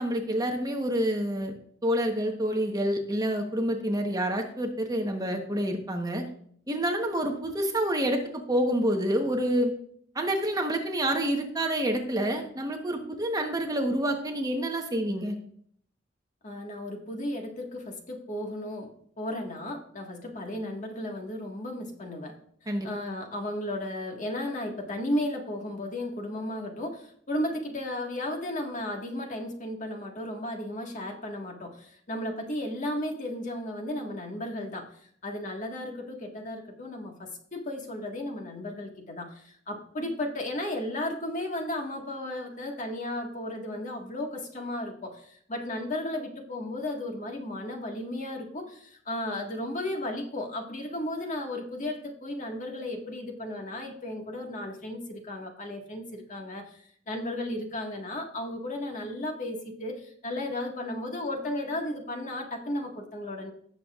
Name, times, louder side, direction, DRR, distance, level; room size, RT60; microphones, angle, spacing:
voice 1, 0.0-1.5 1.8-6.3 6.7-9.7 10.1-15.3 22.7-22.9, right 1 dB, 20° right, 3 dB, 1.1 m, -28 dB
voice 2, 16.4-18.9 19.2-22.4 22.6-63.5, left 1 dB, 45° left, 2 dB, 1.6 m, -34 dB
17.0 x 7.0 x 2.4 m, 0.62 s
head